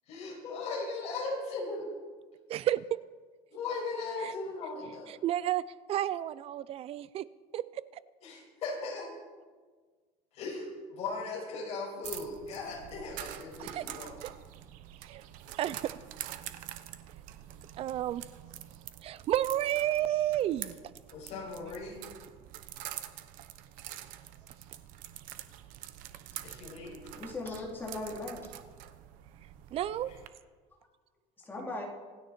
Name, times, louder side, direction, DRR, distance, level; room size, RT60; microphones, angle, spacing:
voice 1, 0.1-1.9 3.5-5.1 8.2-9.1 10.3-14.1 21.1-22.0 26.4-27.0, left 3 dB, 45° left, -2 dB, 5.8 m, -38 dB
voice 2, 2.5-3.0 4.2-4.3 5.1-7.3 7.5-7.8 13.6-13.9 14.2-14.3 15.0-15.3 15.6-15.9 17.8-18.2 19.0-20.8 29.7-30.1, right 12 dB, 40° right, 18 dB, 0.5 m, -31 dB
sound 1, 12.0-30.3, right 13 dB, 60° right, 1.0 m, -46 dB
voice 3, 27.1-28.4 31.4-31.8, left 2 dB, 15° left, -3 dB, 3.4 m, -38 dB
26.5 x 9.6 x 4.4 m, 1.5 s
cardioid pair, 150°, 15 cm